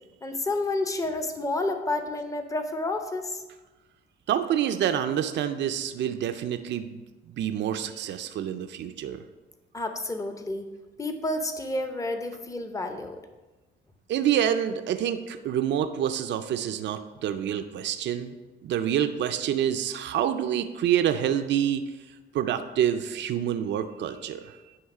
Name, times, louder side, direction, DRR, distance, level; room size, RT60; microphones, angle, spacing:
voice 1, 0.2-3.4 9.7-10.7 11.0-13.2, left 2 dB, 15° left, 7 dB, 0.7 m, -30 dB
voice 2, 4.3-7.0 7.4-9.2 14.1-18.3 18.6-21.8 22.3-24.6, right 10 dB, 65° right, 9 dB, 0.5 m, -27 dB
9.4 x 3.2 x 4.8 m, 1.2 s
cardioid pair, 90°, 20 cm